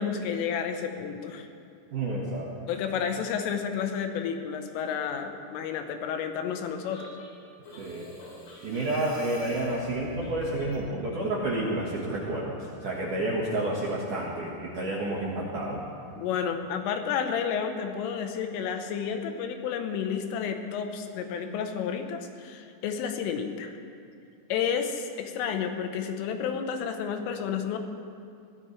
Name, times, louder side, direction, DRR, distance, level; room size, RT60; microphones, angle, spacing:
voice 1, 0.0-1.5 2.7-7.1 16.2-23.7 24.5-27.8, left 7 dB, 80° left, 6 dB, 3.5 m, -31 dB
voice 2, 1.9-2.5 7.8-8.1 8.6-15.8, right 1 dB, 65° right, -4 dB, 2.1 m, -30 dB
sound 1, 6.9-10.8, right 1 dB, 65° left, 6.8 m, -45 dB
23.0 x 16.5 x 3.3 m, 2.4 s
omnidirectional pair, 5.8 m